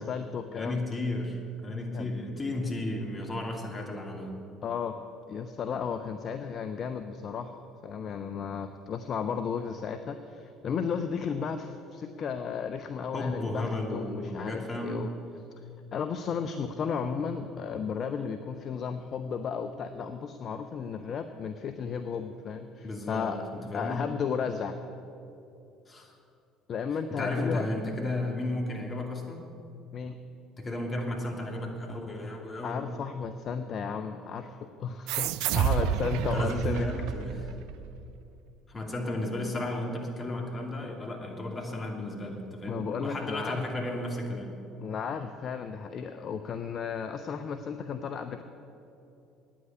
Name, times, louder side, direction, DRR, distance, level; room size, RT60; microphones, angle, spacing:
voice 1, 0.0-0.8 1.9-2.1 4.6-4.9 5.3-15.1 15.9-23.4 23.7-24.8 26.7-27.7 29.9-30.2 32.6-36.9 42.7-43.6 44.8-48.4, left 6 dB, 45° left, 8 dB, 0.6 m, -34 dB
voice 2, 0.5-4.3 13.1-15.0 22.8-24.0 25.9-26.1 27.1-29.4 30.6-32.9 36.2-37.5 38.7-44.5, left 1 dB, 30° left, 1 dB, 2.5 m, -34 dB
sound 1, 35.1-38.1, right 10 dB, 65° right, 0.4 m, -30 dB
9.5 x 8.7 x 9.9 m, 2.7 s
hypercardioid pair, 60°, 0 cm